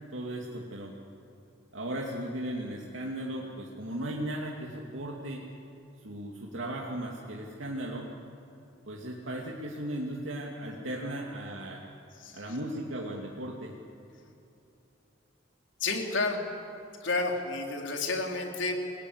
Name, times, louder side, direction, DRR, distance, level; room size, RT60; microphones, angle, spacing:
voice 1, 0.1-0.9 1.7-5.4 6.0-8.1 8.9-11.8 12.3-13.7, right 1 dB, 85° right, -2 dB, 2.7 m, -36 dB
voice 2, 12.1-12.6 15.8-16.4 17.0-18.9, left 3 dB, 75° left, 2 dB, 3.7 m, -31 dB
29.0 x 21.0 x 8.2 m, 2.9 s
head